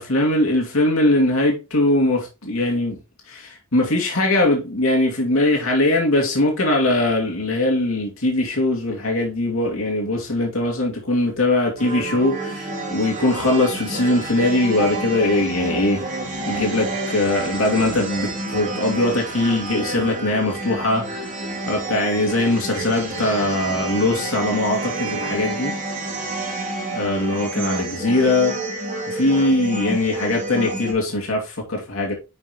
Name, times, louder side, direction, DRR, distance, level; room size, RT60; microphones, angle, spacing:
voice 1, 0.0-3.0 3.3-16.1 16.5-25.7 26.9-28.5 29.1-32.1, left 2 dB, 75° left, 2.5 m, -21 dB
sound 1, 11.8-30.9, right 2 dB, 40° right, 3.2 m, -29 dB
10.5 x 5.9 x 3.0 m
head